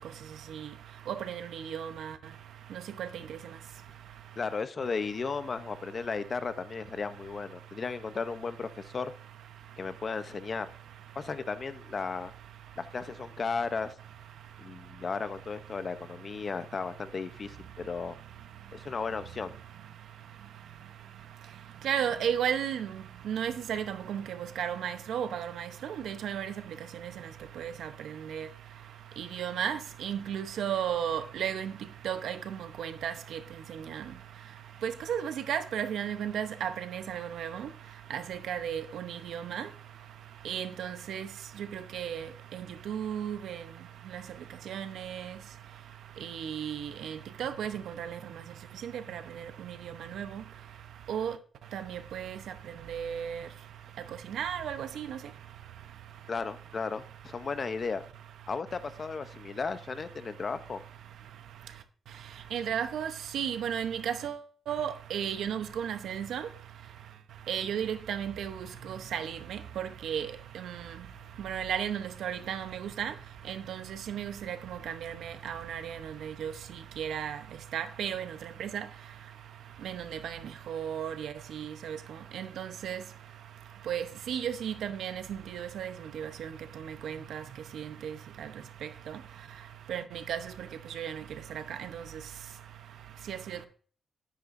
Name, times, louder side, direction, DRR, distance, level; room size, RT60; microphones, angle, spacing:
voice 1, 1.1-2.1 3.0-3.1 21.8-22.9 23.3-25.7 26.0-26.5 27.6-27.9 28.3-28.5 29.2-31.7 32.0-32.4 32.8-33.1 33.9-34.0 34.8-37.7 38.1-39.6 40.4-41.3 41.7-42.2 42.5-43.6 44.7-45.2 46.3-48.2 48.8-49.2 50.1-50.3 51.1-51.3 51.7-52.4 52.9-53.4 54.3-55.2 62.5-64.4 64.7-66.4 67.5-68.5 68.9-70.3 70.6-70.7 71.4-72.7 73.0-73.1 73.5-74.6 74.9-76.5 77.0-77.4 77.7-78.3 78.6-78.8 79.8-80.4 80.7-82.0 82.3-83.0 83.9-85.2 85.5-86.5 87.0-87.4 89.9-90.4 91.0-91.1 93.3-93.7, right 9 dB, 80° right, 0.8 m, -34 dB
voice 2, 4.4-9.1 9.8-10.7 11.1-12.3 12.8-13.9 14.6-18.2 18.7-19.5 56.3-58.0 58.5-60.8, left 4 dB, 35° left, 0.7 m, -35 dB
11.0 x 9.9 x 2.6 m
cardioid pair, 140°, 0 cm